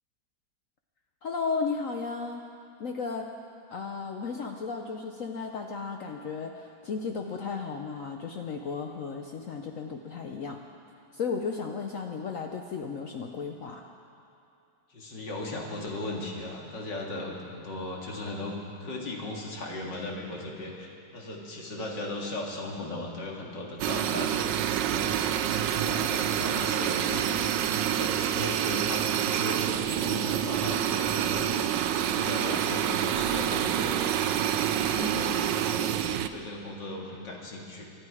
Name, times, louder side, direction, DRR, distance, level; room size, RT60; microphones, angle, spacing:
voice 1, 1.2-2.5 2.8-3.3 3.7-10.6 11.1-13.9 34.9-35.4, left 5 dB, 60° left, 3 dB, 1.0 m, -34 dB
voice 2, 14.9-25.2 25.4-34.1 34.5-37.9, left 2 dB, 75° left, -1 dB, 2.7 m, -37 dB
sound 1, 23.8-36.3, right 10 dB, 85° right, 1.3 m, -27 dB
24.5 x 11.0 x 4.8 m, 2.6 s
omnidirectional pair, 1.9 m